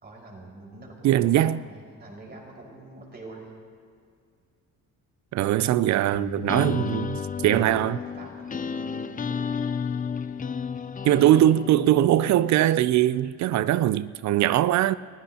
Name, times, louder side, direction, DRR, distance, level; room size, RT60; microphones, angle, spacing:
voice 1, 0.0-3.5 5.6-5.8 6.5-7.0 7.4-8.9 9.3-9.6, right 2 dB, 35° right, 5.0 m, -45 dB
voice 2, 1.0-1.6 5.3-8.0 11.0-14.9, right 13 dB, 65° right, 0.4 m, -21 dB
sound 1, 6.1-12.9, left 6 dB, 30° left, 0.6 m, -32 dB
29.5 x 15.0 x 2.9 m
cardioid pair, 90°, 30 cm